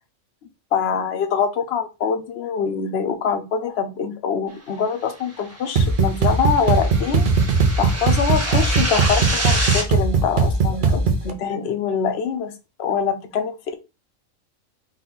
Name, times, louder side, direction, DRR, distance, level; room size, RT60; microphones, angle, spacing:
voice 1, 0.7-7.3 7.8-12.5 12.8-13.8, left 6 dB, 60° left, 0.9 m, -24 dB
sound 1, 5.4-9.8, right 1 dB, 10° right, 1.0 m, -28 dB
sound 2, 5.7-11.3, right 4 dB, 50° right, 0.7 m, -19 dB
4.1 x 2.4 x 3.9 m
omnidirectional pair, 1.3 m